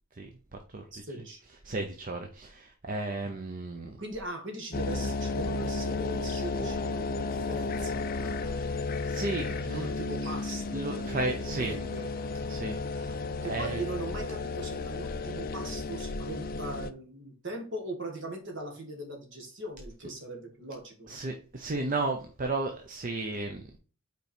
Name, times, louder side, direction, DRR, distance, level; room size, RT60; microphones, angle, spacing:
voice 1, 0.1-1.0 1.6-4.0 8.5-8.7 9.0-9.9 10.7-11.7 12.5-13.2 13.5-13.8 21.1-23.8, right 2 dB, 40° right, 4 dB, 0.7 m, -34 dB
voice 2, 0.9-1.4 4.0-8.9 9.7-12.1 13.4-21.2, right 1 dB, 55° right, 2 dB, 1.7 m, -40 dB
sound 1, 4.7-16.9, left 3 dB, 40° left, 0.5 m, -33 dB
5.7 x 4.6 x 4.4 m, 0.39 s
head